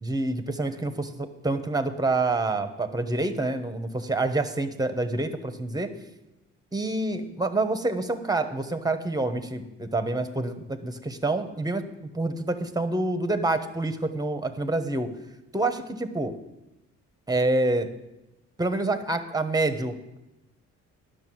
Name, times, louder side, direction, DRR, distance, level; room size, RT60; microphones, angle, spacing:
voice 1, 0.0-5.9 6.7-11.8 12.1-15.1 15.5-16.3 17.3-17.9 18.6-20.2, right 2 dB, 10° right, 9 dB, 1.1 m, -27 dB
10.5 x 6.7 x 7.8 m, 0.98 s
cardioid pair, 90°, 30 cm